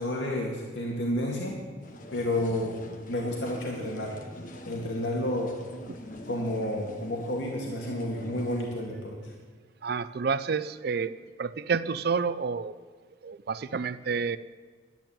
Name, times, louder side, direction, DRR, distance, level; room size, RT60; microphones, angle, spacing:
voice 1, 0.0-1.6 2.1-2.7 3.1-4.2 4.7-5.5 6.3-9.3, left 1 dB, 75° left, -1 dB, 2.2 m, -30 dB
sound 1, 1.8-8.8, left 1 dB, 45° left, 1.2 m, -45 dB
voice 2, 9.8-12.7 13.2-14.4, right 5 dB, 55° right, 15 dB, 0.4 m, -29 dB
12.0 x 9.0 x 8.8 m, 1.5 s
head